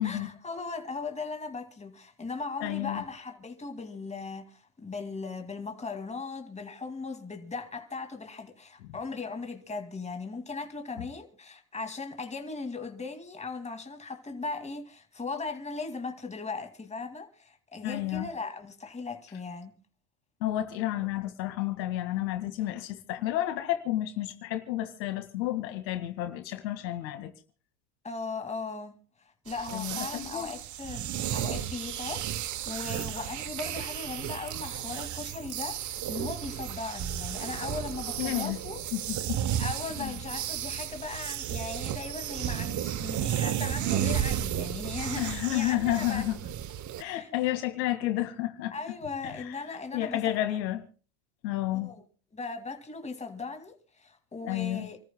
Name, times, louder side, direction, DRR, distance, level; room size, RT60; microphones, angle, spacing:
voice 1, 0.0-19.7 28.0-29.0 29.4-38.8 39.6-46.3 47.0-47.3 48.7-50.4 51.7-52.0 52.3-55.0, left 4 dB, 15° left, 2.3 m, -38 dB
voice 2, 2.6-3.0 8.8-9.0 17.8-18.3 20.4-27.3 29.7-30.5 38.2-38.6 38.9-39.4 39.9-40.2 45.2-46.4 47.0-48.7 49.2-49.6 49.9-50.9 51.4-51.9 54.4-54.9, left 14 dB, 90° left, 2.1 m, -31 dB
sound 1, 29.5-47.0, right 11 dB, 35° right, 0.9 m, -33 dB
29.0 x 14.0 x 2.2 m
supercardioid pair, 110°, 50 cm